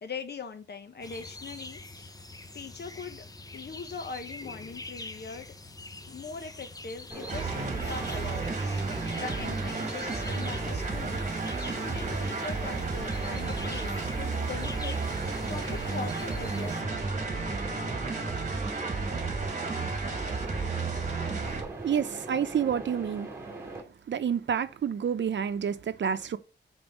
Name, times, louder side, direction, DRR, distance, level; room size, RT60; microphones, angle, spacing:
voice 1, 0.0-2.1 2.5-3.3 3.5-5.5 6.1-8.9 9.1-17.1, left 5 dB, 65° left, 1.1 m, -41 dB
sound 1, 1.0-16.8, left 2 dB, 20° left, 0.6 m, -45 dB
Mechanisms, 7.1-23.8, right 3 dB, 15° right, 2.2 m, -41 dB
sound 2, 7.3-21.6, right 3 dB, 40° right, 1.6 m, -32 dB
voice 2, 21.8-23.3 24.1-26.4, right 8 dB, 80° right, 0.7 m, -28 dB
5.4 x 4.2 x 5.9 m
wide cardioid pair, 140°, 18 cm